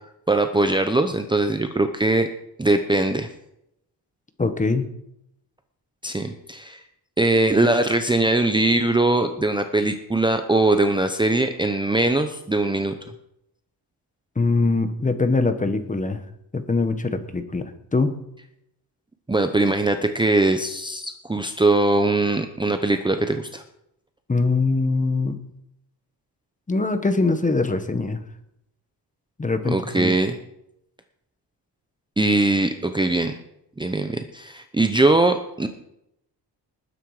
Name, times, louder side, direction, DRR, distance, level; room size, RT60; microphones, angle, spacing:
voice 1, 0.3-2.3 2.6-3.3 6.0-6.8 7.2-12.9 19.3-23.6 29.6-30.4 32.2-33.3 33.8-35.7, right 2 dB, 10° right, 7 dB, 0.8 m, -21 dB
voice 2, 4.4-4.9 14.4-16.2 16.5-18.2 24.3-25.4 26.7-28.2 29.4-30.1, left 3 dB, 20° left, 9 dB, 1.3 m, -22 dB
20.0 x 9.8 x 4.9 m, 0.80 s
cardioid pair, 140°, 43 cm